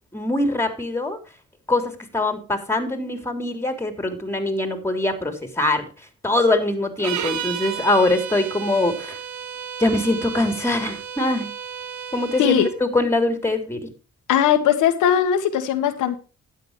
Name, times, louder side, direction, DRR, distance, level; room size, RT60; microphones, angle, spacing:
voice 1, 0.1-1.2 1.7-5.8 6.2-9.2 9.8-11.5 12.1-13.9, left 2 dB, 10° left, 7 dB, 3.4 m, -23 dB
sound 1, 7.0-12.8, right 8 dB, 75° right, 1.6 m, -33 dB
voice 2, 14.3-16.2, left 9 dB, 85° left, 6 dB, 1.4 m, -19 dB
12.5 x 10.0 x 3.2 m, 0.34 s
cardioid pair, 90°, 30 cm